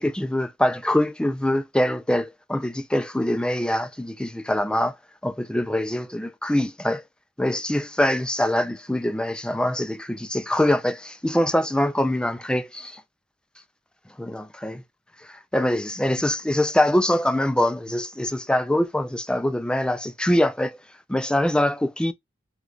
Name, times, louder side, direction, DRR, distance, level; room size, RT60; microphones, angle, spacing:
voice 1, 0.0-5.0 5.2-7.0 7.4-13.0 14.2-14.8 15.2-20.8 21.1-22.1, left 1 dB, 5° left, 0.3 m, -24 dB
4.9 x 2.3 x 3.8 m
head